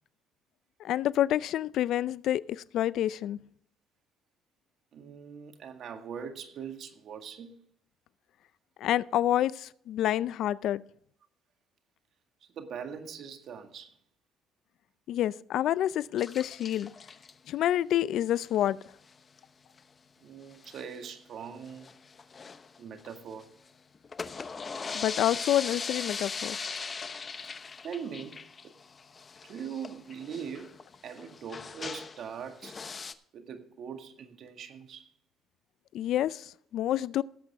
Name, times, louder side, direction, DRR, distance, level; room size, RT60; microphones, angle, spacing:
voice 1, 0.8-3.4 8.8-10.8 15.1-16.9 17.5-18.8 24.9-26.6 35.9-37.2, left 12 dB, 70° left, 0.4 m, -28 dB
voice 2, 4.9-7.6 12.5-13.9 20.2-21.9 22.8-23.5 27.8-28.5 29.4-30.8 31.0-32.8 33.3-35.1, right 7 dB, 60° right, 1.8 m, -41 dB
sound 1, 16.2-17.3 18.5-18.8 19.1-19.2 19.4-19.5 19.8-19.9 20.5-21.1 21.6-23.4 23.9-32.3 32.6-33.1, left 5 dB, 35° left, 0.9 m, -40 dB
17.0 x 8.2 x 3.5 m
cardioid pair, 85°, 0 cm